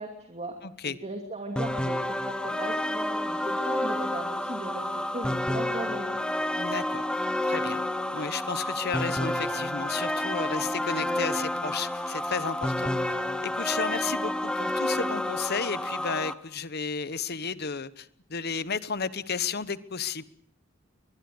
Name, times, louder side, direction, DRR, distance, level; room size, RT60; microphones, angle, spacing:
voice 1, 0.0-0.6 0.9-2.0 2.3-6.2, right 2 dB, 30° right, 2.6 m, -38 dB
voice 2, 0.6-1.0 6.6-7.0 7.5-7.8 8.1-13.2 13.4-20.2, left 5 dB, 50° left, 1.1 m, -33 dB
sound 1, 1.6-16.3, left 1 dB, 5° left, 1.2 m, -29 dB
22.5 x 21.5 x 7.8 m
head